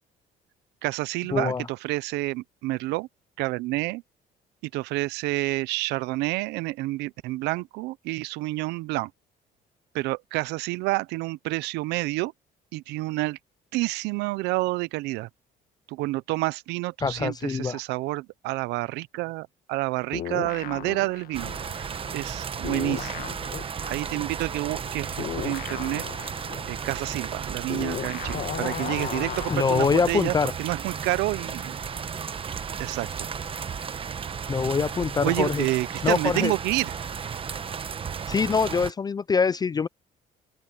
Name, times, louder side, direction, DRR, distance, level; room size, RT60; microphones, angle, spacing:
voice 1, 0.8-3.1 3.4-4.0 4.7-9.1 9.9-12.3 12.7-13.4 13.7-15.3 15.9-23.3 23.9-26.0 26.7-31.8 32.8-33.3 35.2-36.9, right 20 dB, 90° right, 0.6 m, -29 dB
voice 2, 1.3-1.6 17.0-17.8 29.5-30.5 34.5-35.6 36.0-36.5 38.3-39.9, left 5 dB, 25° left, 0.4 m, -24 dB
sound 1, 20.1-22.4 22.6-30.2, left 10 dB, 60° left, 1.9 m, -36 dB
sound 2, 21.3-38.9, right 6 dB, 30° right, 1.1 m, -34 dB
open air
cardioid pair, 110°, 17 cm